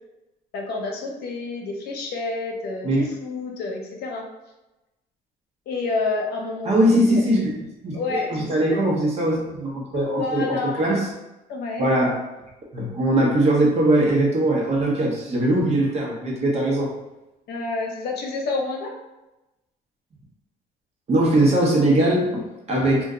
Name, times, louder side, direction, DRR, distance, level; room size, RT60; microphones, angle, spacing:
voice 1, 0.5-4.2 5.7-7.3 7.9-8.9 9.9-10.8 11.5-11.9 17.5-19.0, left 3 dB, 70° left, 1 dB, 0.8 m, -29 dB
voice 2, 6.6-7.5 7.8-8.2 8.5-10.4 10.8-11.0 11.8-12.2 12.7-16.9 21.1-23.1, right 1 dB, 40° right, -2 dB, 1.0 m, -20 dB
2.5 x 2.2 x 3.7 m, 0.99 s
cardioid pair, 110°, 17 cm